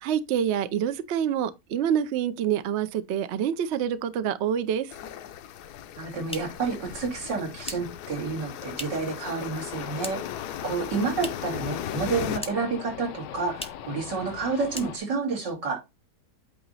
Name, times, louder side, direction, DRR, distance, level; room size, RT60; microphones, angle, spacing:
voice 1, 0.0-4.9, right 9 dB, 65° right, 0.6 m, -27 dB
sound 1, 4.9-12.4, left 10 dB, 70° left, 1.1 m, -37 dB
voice 2, 6.0-10.2 10.6-15.8, right 4 dB, 85° right, 3.4 m, -29 dB
sound 2, 6.3-9.2 9.5-10.4 10.7-11.6 11.9-12.8 13.1-13.2 13.5-13.9 14.3-14.4 14.7-15.3, left 1 dB, 5° left, 0.6 m, -41 dB
sound 3, 9.7-15.0, left 10 dB, 90° left, 1.4 m, -41 dB
8.8 x 2.9 x 5.4 m
omnidirectional pair, 1.8 m